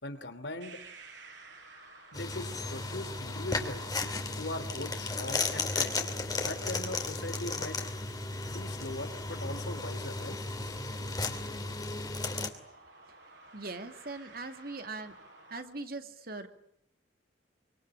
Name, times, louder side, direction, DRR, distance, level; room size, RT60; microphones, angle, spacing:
voice 1, 0.0-0.8 2.1-3.9 4.4-6.0 6.4-7.8 8.4-10.4, left 2 dB, 70° left, 10 dB, 3.0 m, -40 dB
sound 1, 0.6-15.6, right 3 dB, 70° right, 6.9 m, -56 dB
sound 2, 2.1-12.5, left 3 dB, 20° left, 2.8 m, -35 dB
voice 2, 13.5-15.2 15.5-16.5, right 3 dB, 55° right, 7 dB, 2.5 m, -40 dB
25.5 x 25.0 x 8.9 m, 0.71 s
head